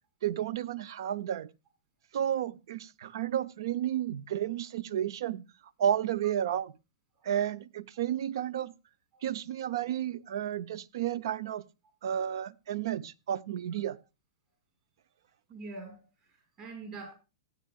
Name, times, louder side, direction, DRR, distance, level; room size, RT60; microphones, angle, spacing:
voice 1, 0.2-1.5 2.1-5.4 5.8-6.7 7.2-8.7 9.2-11.6 12.0-14.0, right 10 dB, 65° right, 0.5 m, -32 dB
voice 2, 15.5-17.1, right 3 dB, 35° right, 5.8 m, -45 dB
16.0 x 8.9 x 2.3 m
hypercardioid pair, 130°, 2 cm